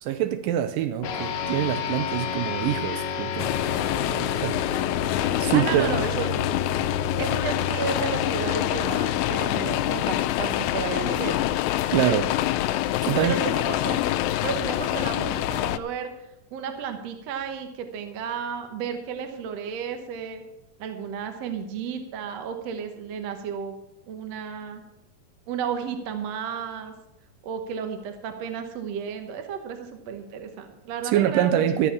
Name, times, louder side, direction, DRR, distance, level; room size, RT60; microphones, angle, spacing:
voice 1, 0.0-3.5 4.4-4.6 5.4-5.9 11.9-12.3 13.0-13.4 31.0-31.9, right 11 dB, 85° right, 2.3 m, -24 dB
sound 1, 1.0-10.7, left 6 dB, 65° left, 2.2 m, -32 dB
sound 2, 3.4-15.8, left 14 dB, 90° left, 2.3 m, -26 dB
voice 2, 5.5-6.3 7.2-11.5 13.2-14.0 14.4-16.1 16.5-20.4 20.8-23.7 24.1-24.8 25.5-26.9 27.4-31.6, right 7 dB, 60° right, 1.9 m, -33 dB
13.5 x 7.1 x 7.1 m
omnidirectional pair, 3.9 m